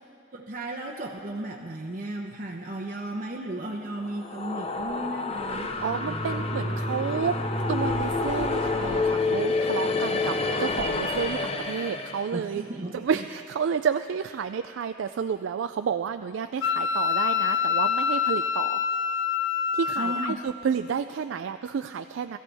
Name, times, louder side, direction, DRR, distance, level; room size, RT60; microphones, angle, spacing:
voice 1, 0.3-6.4 12.3-13.3 20.0-20.4, right 1 dB, 45° right, -1 dB, 0.9 m, -35 dB
sound 1, 4.0-12.3, left 3 dB, 30° left, 0.7 m, -28 dB
voice 2, 5.8-7.4 7.7-10.3 10.6-12.6 12.9-18.8 19.7-22.4, right 6 dB, 75° right, 9 dB, 0.3 m, -30 dB
Wind instrument woodwind instrument, 16.6-20.3, left 7 dB, 65° left, 0.5 m, -26 dB
21.5 x 14.0 x 3.5 m, 2.4 s
head